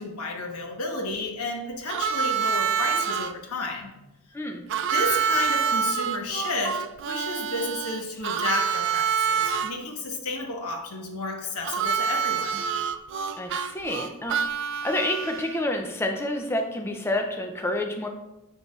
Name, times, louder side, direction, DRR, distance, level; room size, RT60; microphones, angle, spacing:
voice 1, 0.0-3.9 4.9-12.6, left 2 dB, 80° left, 2 dB, 1.1 m, -32 dB
Harmonica, 1.9-3.3 4.7-9.7 11.6-15.6, right 7 dB, 55° right, 0.4 m, -26 dB
voice 2, 4.3-4.7 13.4-14.5 14.8-18.1, left 1 dB, 10° left, 3 dB, 0.4 m, -29 dB
6.7 x 6.7 x 2.3 m, 0.97 s
head